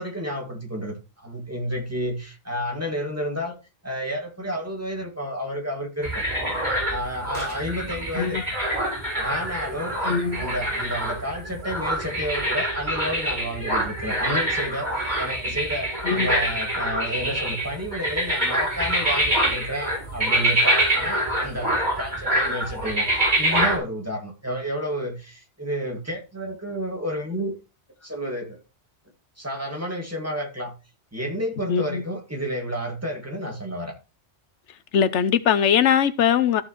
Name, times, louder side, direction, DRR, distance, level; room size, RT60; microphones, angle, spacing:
voice 1, 0.0-3.6 3.8-6.2 6.9-8.4 9.2-10.0 10.3-14.9 15.2-23.1 23.4-27.6 28.0-28.6 29.4-30.7 31.1-33.9, equal, 15° right, 2.0 m, -31 dB
sound 1, 6.0-23.8, right 1 dB, 40° right, 4.5 m, -25 dB
voice 2, 10.0-10.5 16.0-16.3 31.7-32.0 34.9-36.6, left 8 dB, 80° left, 1.0 m, -21 dB
14.0 x 6.3 x 3.0 m
omnidirectional pair, 1.2 m